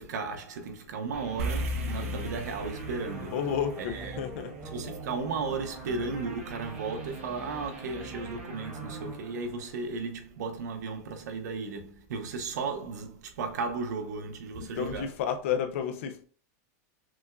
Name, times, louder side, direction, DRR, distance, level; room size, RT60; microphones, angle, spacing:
voice 1, 0.0-3.4 3.8-4.2 4.6-15.1, right 4 dB, 85° right, 0.9 m, -35 dB
sound 1, 1.1-10.2, right 3 dB, 15° right, 0.6 m, -43 dB
sound 2, 1.4-5.9, equal, 60° right, 0.7 m, -36 dB
voice 2, 3.3-4.5 14.8-16.2, left 8 dB, 50° left, 0.5 m, -31 dB
6.0 x 2.4 x 2.3 m
supercardioid pair, 180°, 9 cm